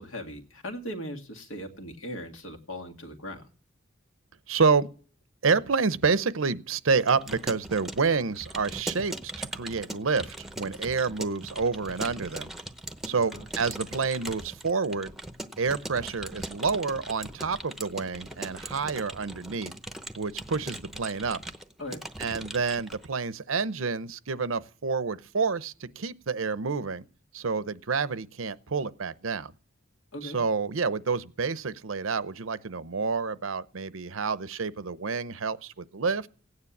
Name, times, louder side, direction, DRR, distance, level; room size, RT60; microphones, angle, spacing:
voice 1, 0.0-3.5 13.1-13.4 21.8-22.0 30.1-30.4, equal, 75° left, 2.2 m, -39 dB
voice 2, 4.5-4.9 5.4-12.5 13.1-15.1 15.6-19.7 20.2-21.4 22.2-27.0 27.3-29.5 30.2-36.3, right 4 dB, 80° right, 0.8 m, -28 dB
Keyboard (musical) / Computer keyboard, 7.0-23.1, right 1 dB, ahead, 0.8 m, -40 dB
16.5 x 9.7 x 7.3 m
head